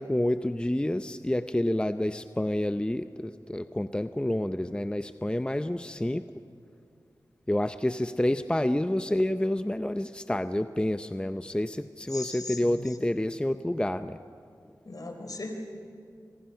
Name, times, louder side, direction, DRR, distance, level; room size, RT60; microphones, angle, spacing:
voice 1, 0.0-6.3 7.5-14.2, left 1 dB, 15° left, 10 dB, 0.6 m, -28 dB
voice 2, 12.1-12.9 14.9-15.6, left 2 dB, 55° left, 5 dB, 3.7 m, -38 dB
27.0 x 23.5 x 5.8 m, 2.4 s
cardioid pair, 40°, 7 cm